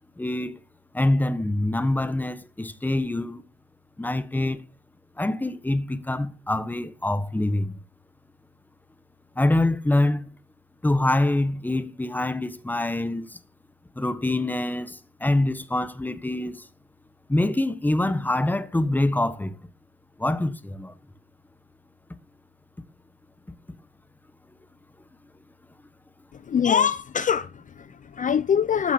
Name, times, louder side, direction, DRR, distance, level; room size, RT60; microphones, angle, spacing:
voice 1, 0.2-0.6 0.9-3.4 4.0-4.6 5.2-7.7 9.4-10.3 10.8-13.3 14.0-16.6 17.3-19.5 20.2-20.9, left 1 dB, 10° left, 1.2 m, -25 dB
voice 2, 26.3-28.9, left 7 dB, 40° left, 0.6 m, -24 dB
15.0 x 5.8 x 7.0 m
cardioid pair, 90°, 20 cm